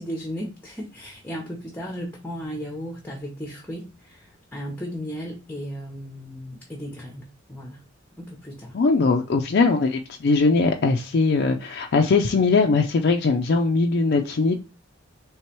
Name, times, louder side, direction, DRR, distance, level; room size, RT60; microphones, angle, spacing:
voice 1, 0.0-7.8 8.2-8.8, equal, 10° left, 0.8 m, -35 dB
voice 2, 8.7-14.5, left 4 dB, 55° left, 0.4 m, -20 dB
3.3 x 3.1 x 4.4 m
head